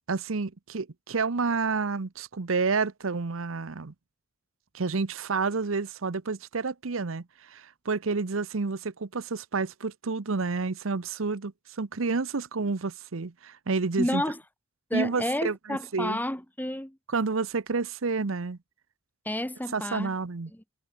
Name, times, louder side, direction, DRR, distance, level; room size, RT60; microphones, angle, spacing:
voice 1, 0.1-3.9 4.7-14.2 14.9-16.2 17.1-18.6 19.7-20.5, right 4 dB, 90° right, 0.9 m, -29 dB
voice 2, 14.0-14.4 14.9-17.0 19.3-20.1 20.5-20.6, left 1 dB, 10° left, 1.8 m, -30 dB
head